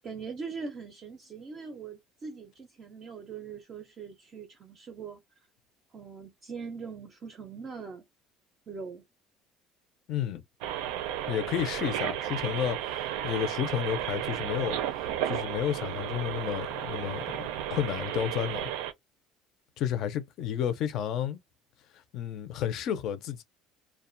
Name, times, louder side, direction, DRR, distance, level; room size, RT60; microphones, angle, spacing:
voice 1, 0.0-5.2 5.9-8.0 8.7-9.0, right 5 dB, 30° right, 0.5 m, -41 dB
voice 2, 10.1-10.4 11.3-14.8 15.2-18.7 19.8-21.4 22.1-23.4, left 10 dB, 45° left, 0.5 m, -31 dB
sound 1, 10.6-18.9, right 11 dB, 90° right, 0.5 m, -33 dB
2.3 x 2.2 x 2.5 m
cardioid pair, 175°, 0 cm